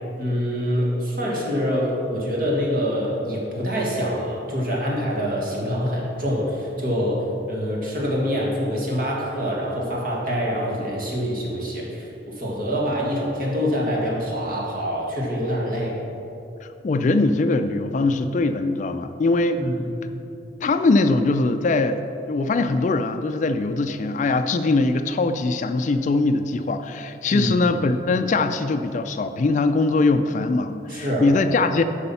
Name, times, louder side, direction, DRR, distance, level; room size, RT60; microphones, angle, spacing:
voice 1, 0.2-16.0 19.6-19.9 27.3-27.5 30.9-31.3, equal, 50° right, -3 dB, 1.7 m, -25 dB
voice 2, 16.6-19.6 20.6-22.0 22.3-31.8, left 3 dB, 40° left, 9 dB, 0.3 m, -21 dB
8.3 x 5.5 x 5.5 m, 2.8 s
head